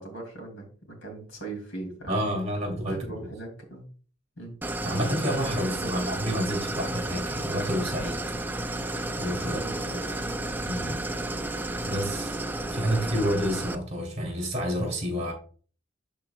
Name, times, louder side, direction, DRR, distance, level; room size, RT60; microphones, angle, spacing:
voice 1, 0.0-2.2 2.9-3.9 4.4-4.5 5.7-6.2 9.4-10.2, right 2 dB, 80° left, 2 dB, 2.9 m, -39 dB
voice 2, 2.1-3.3 4.8-8.2 9.2-9.6 10.6-11.0 11.9-15.3, equal, 35° right, 1 dB, 3.0 m, -29 dB
Idling, 4.6-13.8, right 1 dB, 10° right, 0.4 m, -32 dB
12.0 x 4.5 x 2.4 m, 0.42 s
head